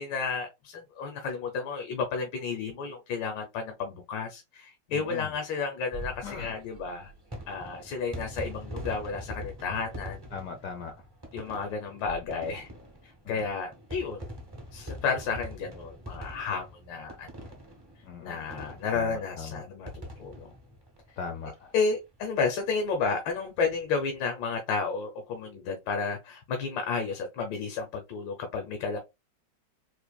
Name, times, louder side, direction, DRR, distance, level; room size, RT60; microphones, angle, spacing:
voice 1, 0.0-7.1 7.5-10.2 11.3-12.7 13.0-14.3 14.7-17.3 18.2-20.5 21.7-29.0, left 5 dB, 85° left, 1.5 m, -32 dB
voice 2, 4.9-5.3 6.2-6.5 10.3-10.9 13.2-13.4 18.0-18.4 18.9-19.7 21.2-21.7, left 6 dB, 70° left, 0.8 m, -39 dB
sound 1, 5.8-21.8 22.1-22.2 22.4-22.5 23.8-24.1, right 1 dB, 25° right, 0.4 m, -43 dB
4.3 x 2.5 x 2.2 m
omnidirectional pair, 2.0 m